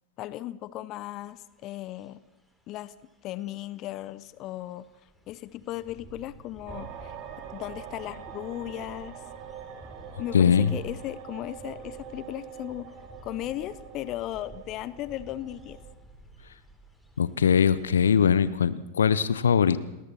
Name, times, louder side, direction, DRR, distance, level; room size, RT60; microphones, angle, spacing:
voice 1, 0.2-2.2 2.7-2.9 3.2-4.9 5.3-7.2 7.5-9.2 10.2-12.9 13.2-15.8, left 14 dB, 35° left, 17 dB, 0.8 m, -36 dB
sound 1, 1.2-18.5, right 1 dB, ahead, 4.2 m, -51 dB
sound 2, 6.7-15.9, right 9 dB, 45° right, 2.9 m, -44 dB
voice 2, 10.3-10.7 17.2-19.8, left 7 dB, 70° left, 16 dB, 0.8 m, -21 dB
29.5 x 21.0 x 4.4 m, 0.95 s
figure-of-eight pair, 90°, 0 cm